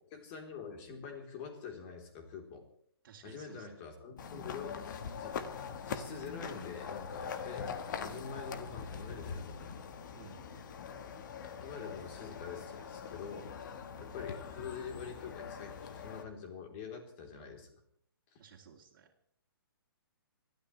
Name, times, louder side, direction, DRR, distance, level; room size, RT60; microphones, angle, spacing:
voice 1, 0.1-2.7 3.2-5.4 5.9-9.8 11.6-17.7 18.3-18.4, left 6 dB, 30° left, 3 dB, 3.5 m, -46 dB
voice 2, 3.0-3.7 10.1-10.8 18.4-19.1, right 7 dB, 50° right, -5 dB, 2.5 m, -56 dB
sound 1, 4.2-16.2, left 6 dB, 50° left, 1.4 m, -43 dB
30.0 x 13.0 x 3.2 m, 0.66 s
hypercardioid pair, 155°, 13 cm